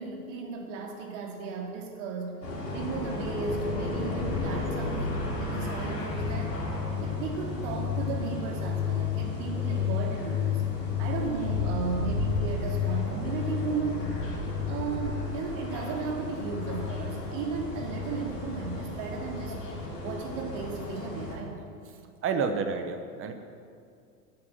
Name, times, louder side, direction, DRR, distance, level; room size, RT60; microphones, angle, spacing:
voice 1, 0.0-2.4 2.7-6.6 7.0-10.7 11.0-14.1 14.7-19.6 20.0-21.6, right 5 dB, 50° right, 1 dB, 2.6 m, -35 dB
sound 1, 2.4-21.4, left 5 dB, 90° left, 3.1 m, -32 dB
voice 2, 22.2-23.3, right 5 dB, 25° right, 7 dB, 1.0 m, -29 dB
10.5 x 8.5 x 7.7 m, 2.3 s
hypercardioid pair, 100°, 48 cm